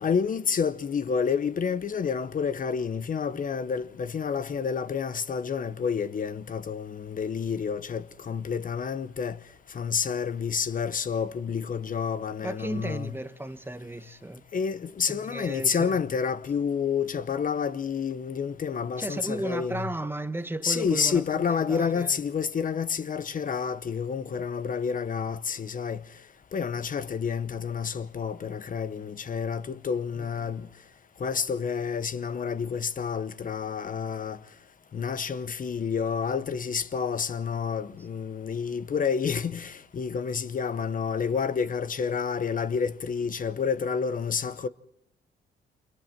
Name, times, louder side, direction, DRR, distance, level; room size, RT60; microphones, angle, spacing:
voice 1, 0.0-9.4 9.7-13.1 14.5-19.9 20.6-26.0 26.5-30.7 31.2-34.4 34.9-44.7, left 6 dB, 45° left, 0.9 m, -29 dB
voice 2, 12.4-14.5 15.1-16.0 19.0-22.2 30.1-30.5, right 1 dB, 10° right, 1.2 m, -35 dB
29.5 x 25.0 x 4.5 m
cardioid pair, 90°, 20 cm